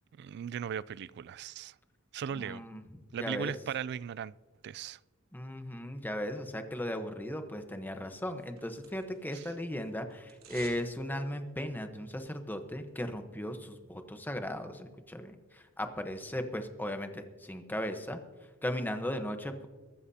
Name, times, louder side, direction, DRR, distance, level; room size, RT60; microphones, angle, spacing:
voice 1, 0.1-1.7 2.1-2.6 3.1-4.3 4.6-5.0 9.3-9.5, right 8 dB, 55° right, 0.3 m, -38 dB
voice 2, 2.3-2.8 3.2-3.5 5.3-18.2 18.6-19.7, left 1 dB, 10° left, 1.0 m, -37 dB
sound 1, 8.1-9.3 9.6-10.9 11.2-11.3, right 5 dB, 90° right, 3.2 m, -52 dB
23.0 x 13.0 x 2.8 m
head